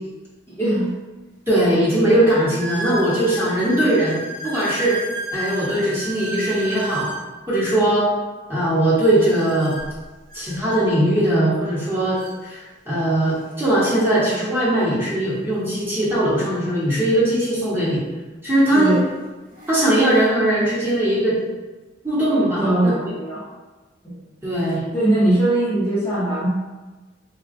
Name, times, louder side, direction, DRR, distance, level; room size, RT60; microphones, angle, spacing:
voice 1, 0.5-0.9 18.7-19.0 22.6-23.5 24.0-24.2 24.9-26.5, right 1 dB, 15° left, -11 dB, 0.6 m, -20 dB
voice 2, 1.5-5.0 5.3-7.1 7.5-8.1 8.5-9.7 10.3-12.2 12.4-18.0 18.4-18.9 19.7-21.4 22.0-22.9 24.4-24.8, right 1 dB, 15° right, -9 dB, 1.0 m, -20 dB
sound 1, 1.6-1.7 2.6-7.2 9.2-10.8 11.8-11.9 12.2-12.4 13.1-13.2 15.5-15.6 17.6-17.7 18.5-18.8 19.3-20.3, right 2 dB, 50° right, 1.0 m, -33 dB
3.6 x 2.3 x 2.5 m, 1.2 s
head